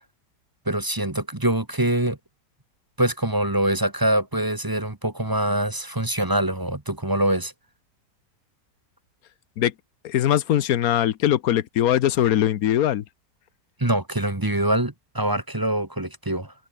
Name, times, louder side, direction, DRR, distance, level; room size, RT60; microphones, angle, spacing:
voice 1, 0.7-2.2 3.0-7.5 13.8-16.5, right 1 dB, 15° right, 1.2 m, -24 dB
voice 2, 10.0-13.0, left 11 dB, 60° left, 1.1 m, -21 dB
omnidirectional pair, 1.9 m